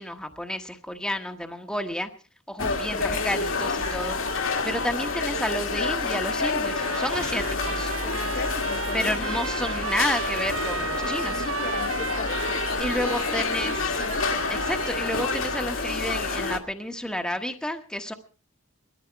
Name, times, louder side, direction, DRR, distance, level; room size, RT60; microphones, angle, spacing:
voice 1, 0.0-2.1 2.5-4.2 4.6-7.9 8.9-11.5 12.8-14.0 14.5-18.1, equal, 5° left, 1.1 m, -31 dB
sound 1, 2.6-16.6, left 4 dB, 75° left, 2.1 m, -28 dB
voice 2, 2.9-3.4 8.0-9.4 11.0-14.5, left 3 dB, 45° left, 1.3 m, -38 dB
Trumpet, 6.6-15.8, right 7 dB, 70° right, 0.7 m, -35 dB
19.5 x 13.5 x 4.6 m
head